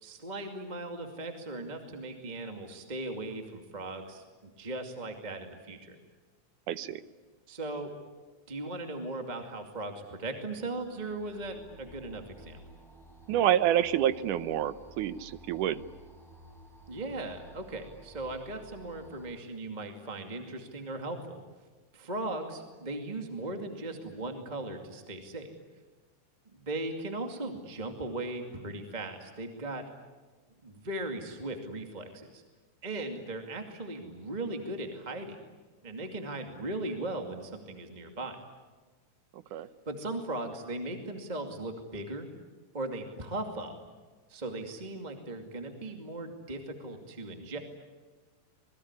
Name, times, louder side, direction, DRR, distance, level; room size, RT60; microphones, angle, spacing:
voice 1, 0.0-6.0 7.5-7.9 8.5-12.6 16.9-21.4 21.9-25.5 26.5-29.8 30.6-32.4 32.8-35.4 35.8-38.4 39.9-42.3 42.7-43.7 44.3-47.6, right 2 dB, 15° right, 4 dB, 2.2 m, -38 dB
voice 2, 6.7-7.0 13.3-15.8 39.3-39.7, right 11 dB, 90° right, 14 dB, 2.5 m, -28 dB
sound 1, 10.5-19.3, equal, ahead, 4.8 m, -53 dB
27.0 x 21.5 x 9.8 m, 1.3 s
omnidirectional pair, 3.5 m